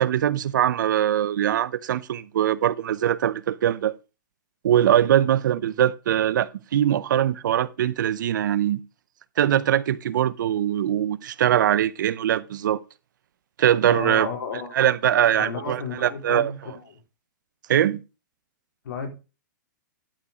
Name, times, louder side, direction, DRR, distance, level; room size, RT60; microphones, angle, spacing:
voice 1, 0.0-3.9 4.6-8.8 9.4-12.8 13.6-14.3 14.7-16.5 17.7-18.0, right 11 dB, 70° right, 0.7 m, -22 dB
voice 2, 13.9-14.8 15.4-17.0 18.8-19.1, left 4 dB, 75° left, 3.7 m, -33 dB
11.5 x 4.9 x 5.0 m
hypercardioid pair, 150°, 11 cm